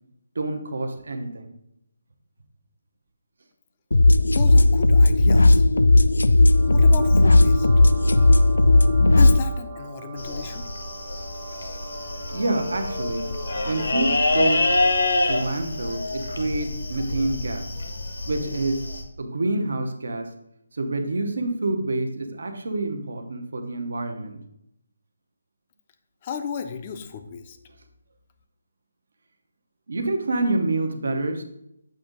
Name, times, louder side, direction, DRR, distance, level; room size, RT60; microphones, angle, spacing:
voice 1, 0.3-1.5 12.3-13.3 13.6-14.7 15.2-17.7 18.3-18.9 19.2-20.3 20.7-24.4 29.9-31.4, right 2 dB, 70° right, 6 dB, 0.8 m, -27 dB
sound 1, 3.9-9.4, left 2 dB, 90° left, 0.3 m, -15 dB
voice 2, 4.2-5.6 6.7-7.7 9.2-10.7 26.2-27.6, left 6 dB, 25° left, 8 dB, 0.5 m, -33 dB
sound 2, 6.4-15.3, right 4 dB, 20° right, 0.8 m, -42 dB
sound 3, 10.2-19.0, left 2 dB, 75° left, 1.1 m, -27 dB
7.5 x 2.7 x 5.1 m, 0.79 s
hypercardioid pair, 165°, 0 cm